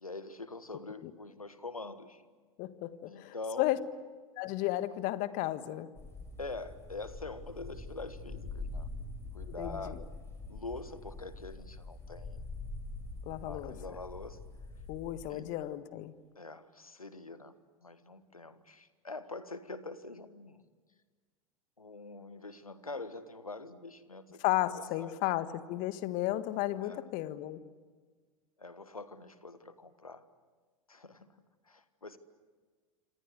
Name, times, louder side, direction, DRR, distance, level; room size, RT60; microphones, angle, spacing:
voice 1, 0.0-2.2 3.0-3.7 6.4-8.9 9.3-10.0 10.5-12.4 13.4-14.4 15.3-15.5 16.3-17.6 17.8-20.6 21.8-24.4 24.7-25.2 26.8-27.1 28.6-30.3 30.9-31.4 31.6-32.2, left 3 dB, 90° left, 13 dB, 1.5 m, -44 dB
voice 2, 2.6-3.8 4.4-5.9 9.6-10.0 13.2-13.7 14.9-16.1 24.4-27.6, left 16 dB, 45° left, 13 dB, 1.6 m, -33 dB
sound 1, 6.0-15.3, left 2 dB, 15° left, 6.8 m, -44 dB
27.5 x 26.5 x 8.1 m, 1.4 s
figure-of-eight pair, 85°, 18 cm